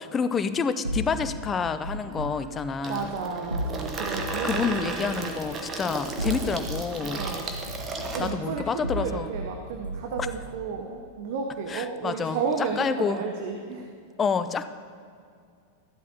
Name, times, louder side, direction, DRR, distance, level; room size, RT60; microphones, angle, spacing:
voice 1, 0.0-3.1 4.4-7.2 8.2-9.3 11.7-13.2 14.2-14.7, left 6 dB, 20° left, 12 dB, 0.4 m, -28 dB
sound 1, 0.8-2.4 3.5-4.8 6.0-6.8 7.2-9.5 9.8-10.5, equal, 90° right, 0.7 m, -34 dB
voice 2, 2.0-5.1 7.0-7.5 8.1-13.9, right 5 dB, 50° right, 3 dB, 0.8 m, -33 dB
Water tap faucet / Sink (filling or washing), 2.8-8.3, right 3 dB, 25° right, 1.1 m, -34 dB
14.0 x 11.5 x 2.8 m, 2.3 s
figure-of-eight pair, 90°, 0 cm